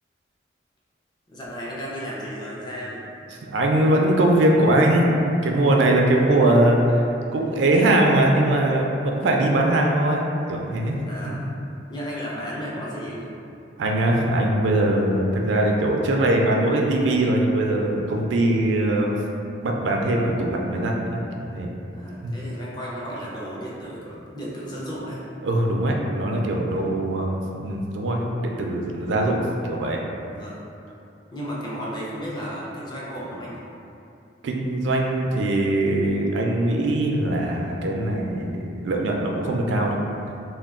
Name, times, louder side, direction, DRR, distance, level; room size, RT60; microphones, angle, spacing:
voice 1, 1.3-3.1 11.1-11.5 11.9-13.3 19.0-19.2 21.9-25.3 30.3-30.6 31.3-33.6, equal, 25° left, -6 dB, 0.4 m, -34 dB
voice 2, 3.4-7.0 7.3-10.9 13.8-19.2 19.6-21.7 22.2-22.3 25.4-30.0 34.4-40.0, right 1 dB, 80° right, 0 dB, 0.4 m, -21 dB
2.2 x 2.2 x 3.5 m, 2.6 s
head